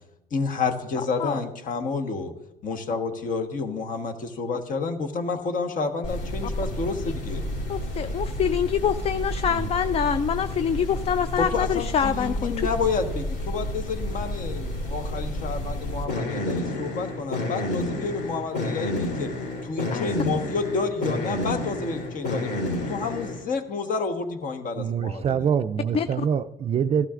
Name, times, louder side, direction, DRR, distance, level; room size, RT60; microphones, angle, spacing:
voice 1, 0.3-2.3 2.6-7.4 11.4-19.3 19.6-25.4, left 4 dB, 50° left, 1.2 m, -30 dB
sound 1, 6.0-23.4, left 1 dB, 80° left, 3.1 m, -30 dB
voice 2, 7.7-12.7 19.9-20.1 25.9-26.2, left 8 dB, 35° left, 0.4 m, -25 dB
voice 3, 24.8-27.1, right 7 dB, 35° right, 0.4 m, -25 dB
15.0 x 12.5 x 2.5 m
cardioid pair, 110°, 17 cm